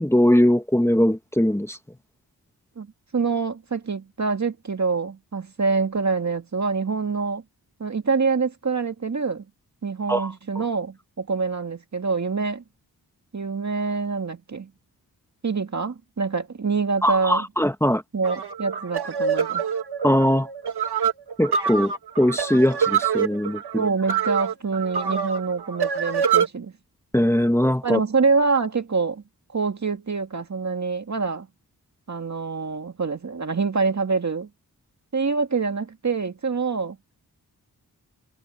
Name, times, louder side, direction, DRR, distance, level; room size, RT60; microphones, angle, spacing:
voice 1, 0.0-1.8 10.1-10.3 17.0-18.0 20.0-20.5 21.4-23.8 27.1-28.0, equal, 5° left, 1.6 m, -20 dB
voice 2, 2.8-7.4 7.8-9.5 9.8-12.6 13.3-14.7 15.4-17.5 18.1-19.6 23.7-26.7 27.8-29.2 29.5-31.5 32.1-34.5 35.1-37.0, right 4 dB, 45° right, 2.1 m, -25 dB
sound 1, 18.2-26.5, right 7 dB, 85° right, 1.9 m, -25 dB
wide cardioid pair, 85°, 38 cm